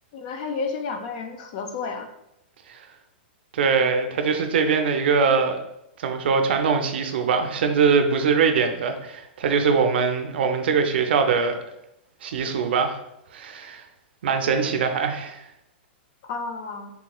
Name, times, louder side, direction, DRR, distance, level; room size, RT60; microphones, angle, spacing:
voice 1, 0.1-2.1 16.3-16.9, left 4 dB, 40° left, 6 dB, 0.4 m, -31 dB
voice 2, 3.5-5.6 6.0-11.5 12.2-13.0 13.3-13.8 14.2-15.4, right 5 dB, 65° right, 6 dB, 0.4 m, -22 dB
3.6 x 2.9 x 2.2 m, 0.83 s
hypercardioid pair, 165°, 6 cm